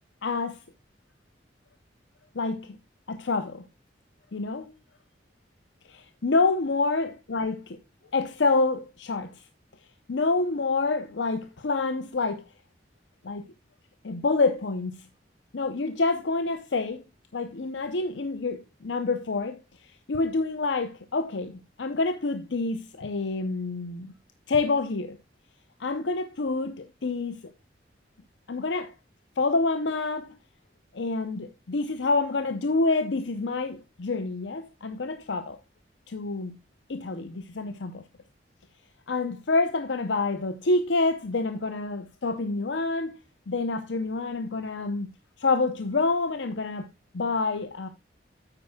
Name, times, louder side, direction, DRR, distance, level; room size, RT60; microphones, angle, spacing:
voice 1, 0.2-0.6 2.3-2.8 3.1-3.6 4.3-4.7 5.9-7.8 8.1-9.3 10.1-12.4 13.2-13.4 14.0-14.9 15.5-17.0 17.3-19.6 20.1-24.1 24.5-25.2 25.8-27.4 28.5-28.9 29.4-30.4 30.9-35.6 36.1-36.6 36.9-38.0 39.1-43.2 43.5-45.1 45.4-46.9 47.1-47.9, left 3 dB, 80° left, 0.7 m, -27 dB
8.9 x 8.9 x 2.2 m
head